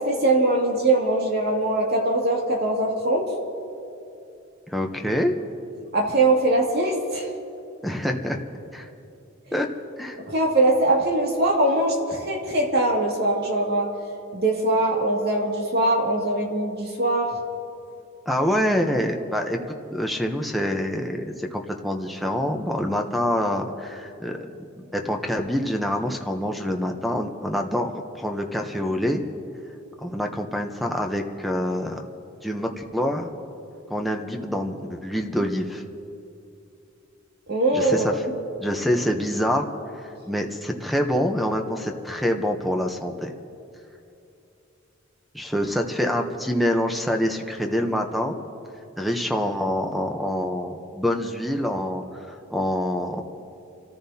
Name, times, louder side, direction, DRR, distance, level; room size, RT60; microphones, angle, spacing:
voice 1, 0.0-3.2 5.9-7.3 10.3-13.9 14.3-17.4 37.5-38.1, right 2 dB, 55° right, -1 dB, 2.2 m, -22 dB
voice 2, 4.7-5.3 7.8-8.4 8.7-8.9 9.5-9.7 10.0-10.2 18.3-19.6 19.9-24.5 24.9-29.2 30.0-32.0 32.4-33.3 33.9-35.8 37.7-38.1 38.6-39.7 40.3-43.3 45.3-48.4 49.0-53.2, equal, ahead, 4 dB, 0.8 m, -26 dB
30.0 x 14.5 x 2.8 m, 2.7 s
head